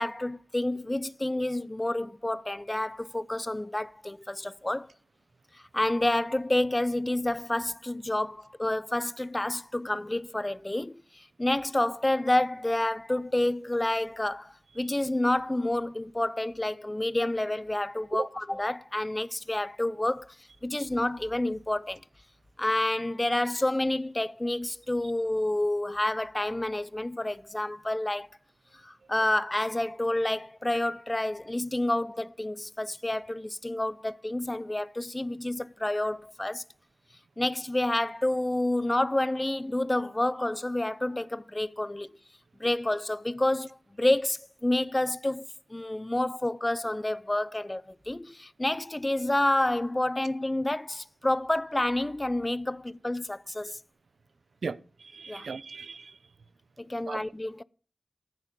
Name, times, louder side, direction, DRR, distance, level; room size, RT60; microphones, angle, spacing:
voice 1, 0.0-4.9 5.5-20.4 20.6-22.0 22.6-28.3 28.8-36.6 37.4-42.1 42.6-53.8 55.3-55.5 56.8-57.6, left 1 dB, 20° left, 0.5 m, -29 dB
voice 2, 54.6-56.2 57.1-57.2, right 4 dB, 85° right, 0.6 m, -37 dB
14.5 x 9.0 x 5.2 m
wide cardioid pair, 60°, 0 cm